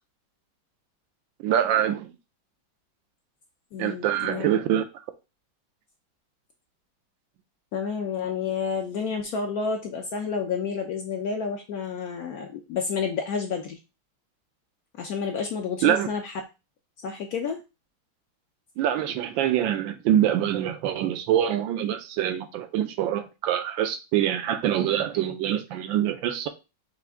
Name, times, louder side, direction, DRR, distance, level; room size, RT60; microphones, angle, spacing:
voice 1, 1.4-2.1 3.8-4.8 15.8-16.1 18.8-26.5, right 11 dB, 80° right, 1.3 m, -25 dB
voice 2, 3.7-4.5 7.7-13.8 15.0-16.4 17.0-17.6, left 5 dB, 65° left, 0.9 m, -30 dB
5.8 x 2.6 x 3.5 m
omnidirectional pair, 2.1 m